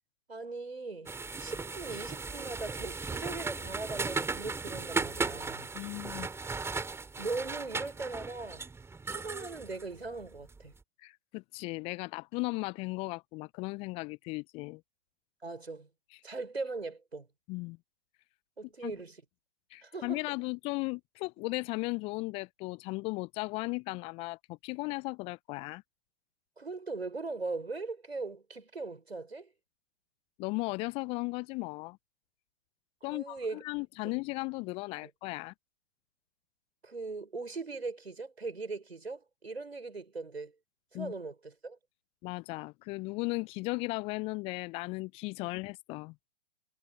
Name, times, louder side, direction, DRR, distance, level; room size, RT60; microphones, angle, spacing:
voice 1, 0.3-1.1 1.4-5.7 7.2-8.7 9.1-10.7 15.4-15.9 16.2-17.3 18.6-19.2 19.8-20.2 26.6-29.5 33.1-33.6 34.0-34.2 35.0-35.1 36.8-40.5 40.9-41.8 45.4-45.5, right 3 dB, 85° right, 5.7 m, -39 dB
sound 1, 1.1-10.6, right 4 dB, 10° right, 3.9 m, -37 dB
voice 2, 5.7-6.3 11.0-14.8 17.5-17.8 18.8-18.9 19.7-25.8 30.4-32.0 33.0-35.5 40.9-41.1 42.2-46.1, left 25 dB, 20° left, 0.4 m, -36 dB
figure-of-eight pair, 110°, 31 cm